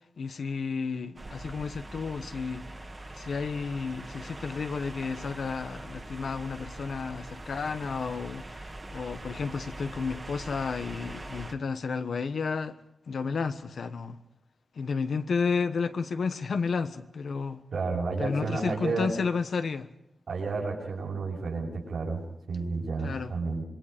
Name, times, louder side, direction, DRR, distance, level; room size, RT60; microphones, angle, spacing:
voice 1, 0.2-2.7 3.2-12.8 13.1-14.2 14.8-17.6 18.2-19.9 22.8-23.3, left 5 dB, 75° left, 1.2 m, -32 dB
sound 1, 1.2-11.5, right 2 dB, 25° right, 1.6 m, -42 dB
voice 2, 17.7-19.1 20.3-22.2 22.5-23.6, right 4 dB, 85° right, 6.2 m, -31 dB
26.5 x 22.0 x 5.1 m
wide cardioid pair, 145°, 0 cm